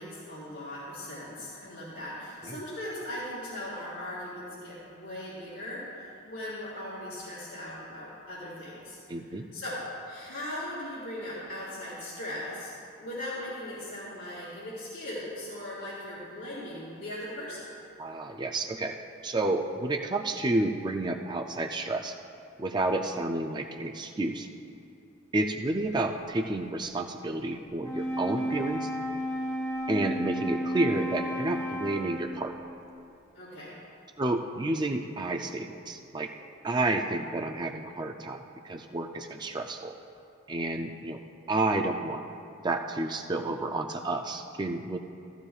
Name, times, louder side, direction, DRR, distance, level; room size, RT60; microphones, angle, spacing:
voice 1, 0.0-9.8 10.0-17.7 33.3-33.7, left 1 dB, 80° left, -11 dB, 3.2 m, -39 dB
voice 2, 9.1-9.5 18.0-19.0 19.2-22.2 22.6-24.5 25.3-28.9 29.9-32.5 34.2-36.3 36.6-39.9 40.5-41.2 41.5-42.2 42.6-45.0, right 2 dB, 20° right, 4 dB, 0.4 m, -30 dB
Wind instrument woodwind instrument, 27.7-32.5, equal, 15° left, 1.4 m, -32 dB
15.0 x 14.5 x 2.4 m, 2.5 s
head